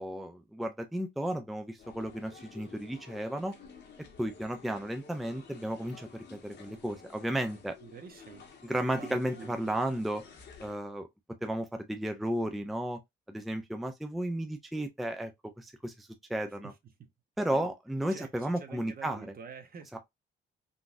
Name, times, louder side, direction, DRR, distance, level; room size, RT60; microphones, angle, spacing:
voice 1, 0.0-3.6 4.2-7.8 8.6-10.2 10.6-11.1 11.4-13.0 13.3-15.3 15.6-16.7 17.4-19.3 19.9-20.0, right 1 dB, ahead, 0.4 m, -33 dB
sound 1, 1.8-10.7, left 5 dB, 60° left, 1.0 m, -52 dB
voice 2, 7.8-8.5 9.0-9.5 16.6-16.7 17.5-17.7 18.1-19.9, right 6 dB, 50° right, 0.9 m, -47 dB
3.8 x 2.3 x 2.5 m
cardioid pair, 90°, 20 cm